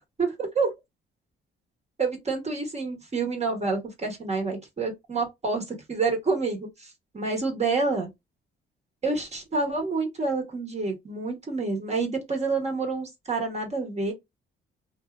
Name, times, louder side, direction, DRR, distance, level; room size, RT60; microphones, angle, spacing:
voice 1, 0.2-0.7 2.0-8.1 9.0-14.1, right 4 dB, 35° right, 1.2 m, -28 dB
2.7 x 2.3 x 2.2 m
cardioid pair, 90°, 20 cm